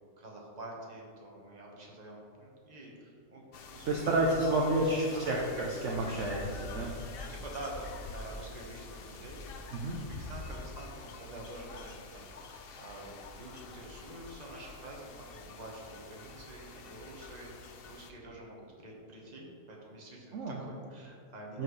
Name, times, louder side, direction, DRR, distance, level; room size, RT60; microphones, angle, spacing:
voice 1, 0.2-4.5 4.9-5.5 7.2-21.6, right 1 dB, 30° right, -2 dB, 1.3 m, -47 dB
sound 1, 3.5-18.1, left 3 dB, 60° left, 0.6 m, -46 dB
voice 2, 3.8-6.9 9.7-10.0 20.3-20.6 21.5-21.6, right 2 dB, 60° right, -2 dB, 1.0 m, -30 dB
13.5 x 4.7 x 3.2 m, 2.5 s
omnidirectional pair, 1.6 m